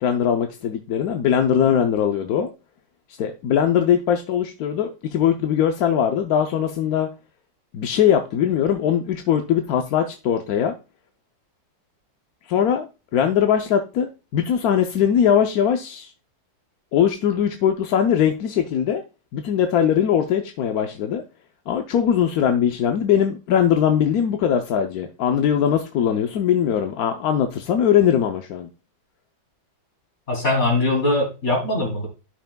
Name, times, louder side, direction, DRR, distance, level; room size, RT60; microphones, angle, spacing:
voice 1, 0.0-2.5 3.2-7.1 7.7-10.8 12.5-16.1 16.9-19.0 19.3-21.2 21.7-28.7, left 9 dB, 65° left, 5 dB, 1.0 m, -21 dB
voice 2, 30.3-32.1, left 2 dB, 35° left, -1 dB, 3.0 m, -21 dB
13.0 x 5.6 x 2.2 m, 0.30 s
omnidirectional pair, 2.1 m